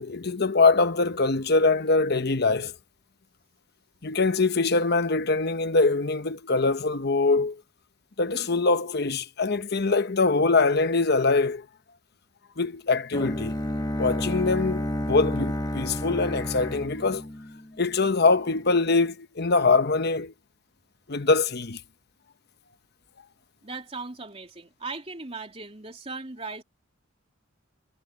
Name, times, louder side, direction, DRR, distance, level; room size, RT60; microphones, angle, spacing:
voice 1, 0.0-2.7 4.0-7.6 8.2-11.7 12.6-13.6 14.0-17.2 17.8-20.3 21.1-21.8, left 3 dB, 50° left, 1.0 m, -23 dB
Bowed string instrument, 13.1-18.1, left 1 dB, 20° left, 1.5 m, -30 dB
voice 2, 23.6-26.6, right 3 dB, 30° right, 3.4 m, -38 dB
head